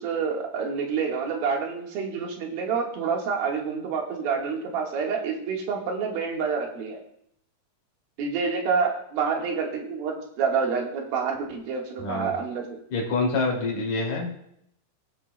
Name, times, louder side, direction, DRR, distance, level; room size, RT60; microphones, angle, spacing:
voice 1, 0.0-7.0 8.2-12.8, right 5 dB, 85° right, 0 dB, 3.5 m, -28 dB
voice 2, 12.0-12.3 12.9-14.3, left 3 dB, 55° left, -2 dB, 3.7 m, -26 dB
18.5 x 8.3 x 2.2 m, 0.71 s
omnidirectional pair, 4.1 m